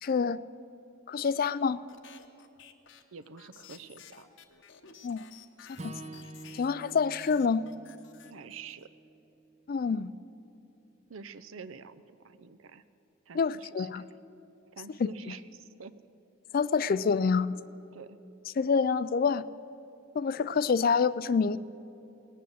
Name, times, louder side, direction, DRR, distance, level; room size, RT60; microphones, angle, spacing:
voice 1, 0.0-0.4 1.1-1.8 5.0-5.2 5.7-6.0 6.5-7.7 9.7-10.1 13.3-14.0 15.0-15.1 16.5-17.5 18.6-19.5 20.2-21.6, left 5 dB, 45° left, 17 dB, 0.3 m, -27 dB
sound 1, 1.9-6.9 7.2-8.8, left 8 dB, 60° left, 0.9 m, -53 dB
voice 2, 3.1-4.3 8.2-8.9 11.1-12.8 13.3-14.1 14.7-15.9 17.9-18.2, right 5 dB, 75° right, 14 dB, 0.6 m, -47 dB
Acoustic guitar / Strum, 5.7-10.1, right 2 dB, 30° right, 0.6 m, -48 dB
18.5 x 9.3 x 7.8 m, 3.0 s
head